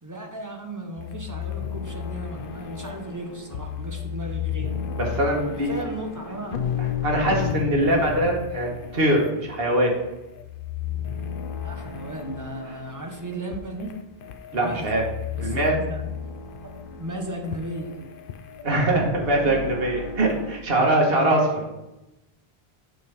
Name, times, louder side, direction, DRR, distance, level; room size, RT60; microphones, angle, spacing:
voice 1, 0.0-4.8 5.7-6.7 11.6-13.9 14.5-14.9 15.3-16.1 16.6-18.1, right 1 dB, 20° right, 2 dB, 1.0 m, -35 dB
sound 1, 1.0-20.6, left 8 dB, 60° left, 0.7 m, -33 dB
voice 2, 4.9-5.8 7.0-9.9 14.5-15.0 15.4-15.8 18.6-21.6, right 1 dB, 65° right, -1 dB, 1.6 m, -22 dB
8.7 x 5.6 x 3.5 m, 0.96 s
omnidirectional pair, 1.1 m